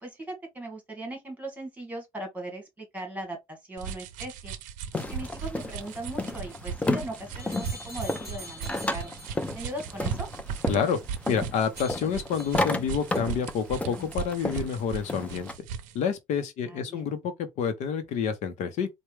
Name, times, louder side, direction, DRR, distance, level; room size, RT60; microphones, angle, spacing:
voice 1, 0.0-4.5 5.0-9.1 9.5-10.3 16.6-17.1, right 1 dB, 10° right, 1.5 m, -39 dB
sound 1, 3.8-16.0, right 7 dB, 80° right, 0.6 m, -37 dB
sound 2, 4.9-15.6, left 2 dB, 10° left, 0.5 m, -33 dB
sound 3, 7.4-9.5 11.8-12.8 13.1-13.2, left 1 dB, 30° left, 2.4 m, -45 dB
voice 2, 10.7-11.0 11.3-15.5 15.9-18.9, left 7 dB, 65° left, 0.7 m, -28 dB
4.5 x 2.1 x 3.2 m
cardioid pair, 135°, 13 cm